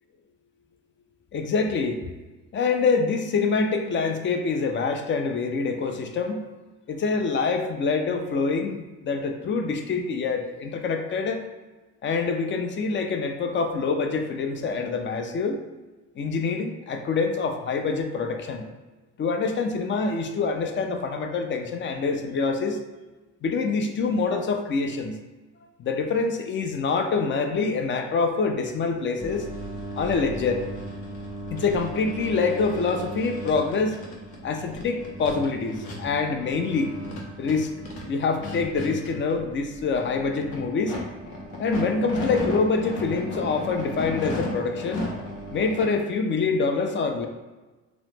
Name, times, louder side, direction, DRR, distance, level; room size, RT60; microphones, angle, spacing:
voice 1, 1.3-2.1 2.5-6.5 6.9-11.4 12.0-15.6 16.2-18.7 19.2-22.8 23.4-25.2 25.8-29.5 30.0-30.6 31.5-34.0 34.4-36.9 37.4-37.7 38.1-41.0 41.6-45.1 45.5-47.3, left 4 dB, 40° left, 5 dB, 0.4 m, -25 dB
sound 1, 29.2-45.8, left 1 dB, 85° left, 0.7 m, -35 dB
2.9 x 2.0 x 3.3 m, 1.2 s
cardioid pair, 90°, 30 cm